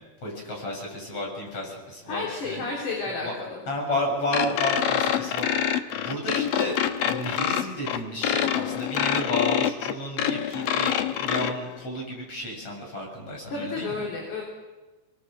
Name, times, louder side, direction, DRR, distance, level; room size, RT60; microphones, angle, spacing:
voice 1, 0.2-2.6 3.0-5.5 6.0-14.1, left 1 dB, 40° left, 0 dB, 8.1 m, -32 dB
voice 2, 2.1-3.6 13.5-14.4, left 3 dB, 55° left, -2 dB, 4.9 m, -31 dB
sound 1, 4.3-11.5, left 10 dB, 75° left, 2.8 m, -26 dB
27.5 x 22.0 x 7.7 m, 1.2 s
omnidirectional pair, 4.4 m